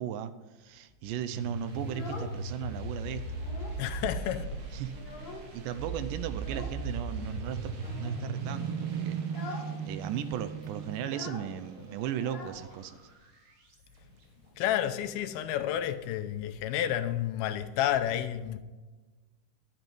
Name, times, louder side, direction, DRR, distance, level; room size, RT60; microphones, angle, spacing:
voice 1, 0.0-3.4 4.7-4.9 5.5-13.0, right 10 dB, 85° right, 1.9 m, -37 dB
sound 1, 1.3-13.8, right 4 dB, 65° right, 3.5 m, -37 dB
Child speech kid speaking, 1.7-2.8 3.1-3.9 4.2-4.3 4.6-5.7 6.3-6.8 7.7-8.2 8.6-8.8 9.2-9.8 10.0-10.1 10.3-13.1, left 3 dB, 45° left, 1.2 m, -45 dB
voice 2, 3.8-4.5 14.6-18.6, left 11 dB, 80° left, 2.5 m, -30 dB
12.0 x 10.5 x 5.3 m
omnidirectional pair, 4.6 m